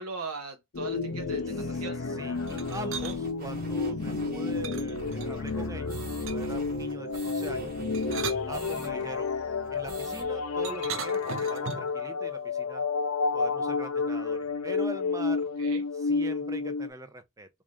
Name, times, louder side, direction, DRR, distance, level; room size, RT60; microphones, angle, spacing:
voice 1, 0.0-2.0 15.6-15.8, right 4 dB, 85° right, 1.1 m, -39 dB
sound 1, 0.7-16.9, left 4 dB, 85° left, 0.7 m, -31 dB
voice 2, 1.5-7.7 8.5-9.3 9.7-12.9 13.3-15.4 15.9-17.5, right 2 dB, 15° right, 0.5 m, -43 dB
sound 2, 2.3-8.9 9.2-9.3 9.6-10.3, right 3 dB, 40° right, 1.1 m, -46 dB
sound 3, 2.5-3.2 4.6-5.6 6.3-6.7 7.8-9.1 10.6-12.0, right 7 dB, 65° right, 0.6 m, -38 dB
3.6 x 2.5 x 3.3 m
head